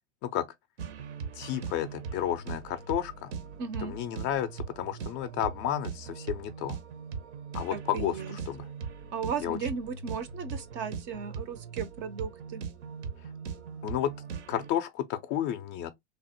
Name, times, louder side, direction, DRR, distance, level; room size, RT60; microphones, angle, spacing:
sound 1, 0.8-14.7, right 6 dB, 70° right, 0.7 m, -40 dB
voice 1, 1.4-3.3 3.8-6.8 7.5-8.7 9.4-9.6 13.8-14.1 14.5-15.9, left 11 dB, 35° left, 0.4 m, -32 dB
voice 2, 3.6-3.9 7.7-8.4 9.1-12.6, right 6 dB, 35° right, 0.4 m, -36 dB
3.3 x 2.0 x 2.7 m
hypercardioid pair, 105°, 35 cm